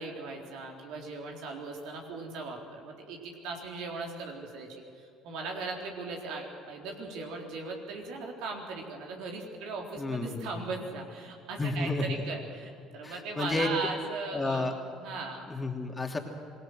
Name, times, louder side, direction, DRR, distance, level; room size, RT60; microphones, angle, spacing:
voice 1, 0.0-14.7 15.0-15.5, right 3 dB, 70° right, 1 dB, 3.9 m, -38 dB
voice 2, 10.0-10.7 11.6-12.2 13.0-13.7 14.3-14.8 15.5-16.2, left 3 dB, 20° left, 2 dB, 2.9 m, -31 dB
26.0 x 18.5 x 6.5 m, 2.5 s
hypercardioid pair, 70°, 0 cm